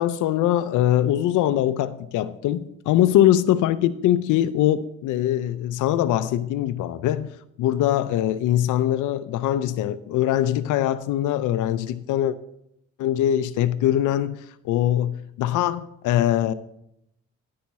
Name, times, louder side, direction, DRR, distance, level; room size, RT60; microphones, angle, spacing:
voice 1, 0.0-12.4 13.0-16.5, left 12 dB, 85° left, 0.5 m, -22 dB
10.5 x 8.6 x 4.1 m
cardioid pair, 90°, 30 cm